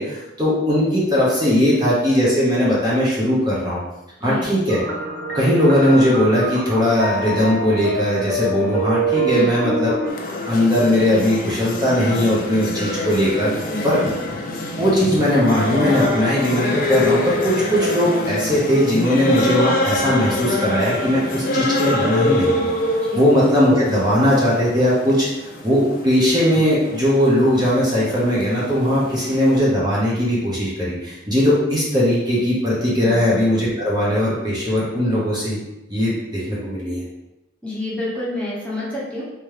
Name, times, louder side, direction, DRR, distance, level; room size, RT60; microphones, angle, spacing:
voice 1, 0.0-3.8 4.2-4.8 5.3-9.9 10.5-13.5 13.8-14.0 14.8-25.3 25.6-35.6 35.9-37.0, equal, 20° right, -7 dB, 0.8 m, -19 dB
sound 1, 4.7-10.1, right 3 dB, 50° right, 0.6 m, -25 dB
voice 2, 9.2-9.6 13.7-14.1 23.0-23.2 33.0-33.2 37.6-39.2, left 2 dB, 5° left, -7 dB, 0.8 m, -28 dB
sound 2, 10.1-29.6, left 1 dB, 45° left, 0.4 m, -25 dB
3.5 x 3.0 x 3.3 m, 0.98 s
head